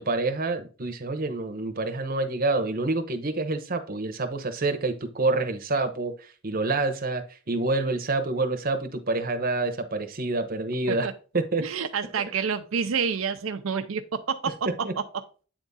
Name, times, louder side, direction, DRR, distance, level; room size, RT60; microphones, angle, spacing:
voice 1, 0.0-11.1 11.3-11.6 14.8-14.9, right 3 dB, 45° right, 8 dB, 0.9 m, -27 dB
voice 2, 11.6-14.7, right 6 dB, 90° right, 8 dB, 0.6 m, -28 dB
8.8 x 3.6 x 4.0 m, 0.37 s
head